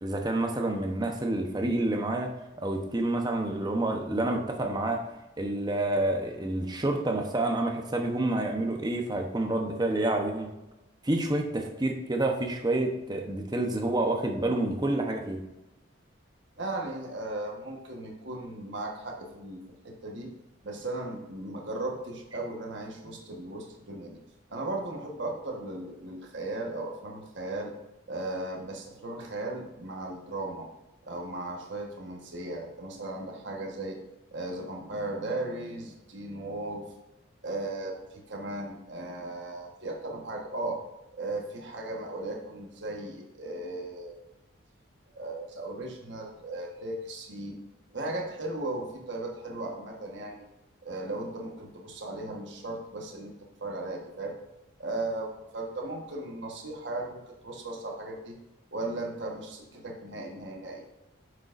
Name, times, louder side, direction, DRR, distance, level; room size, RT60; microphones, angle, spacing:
voice 1, 0.0-2.3 2.6-5.0 5.4-10.5 11.0-15.4, right 2 dB, 20° right, 3 dB, 0.8 m, -28 dB
voice 2, 16.6-20.3 20.6-24.2 24.5-27.7 28.1-30.7 31.0-34.0 34.3-36.9 37.4-40.8 41.1-44.2 45.1-47.6 47.9-50.5 50.8-53.3 53.6-54.4 54.8-58.4 58.7-60.8, right 2 dB, 60° right, 1 dB, 1.3 m, -36 dB
9.3 x 6.6 x 2.5 m, 0.98 s
head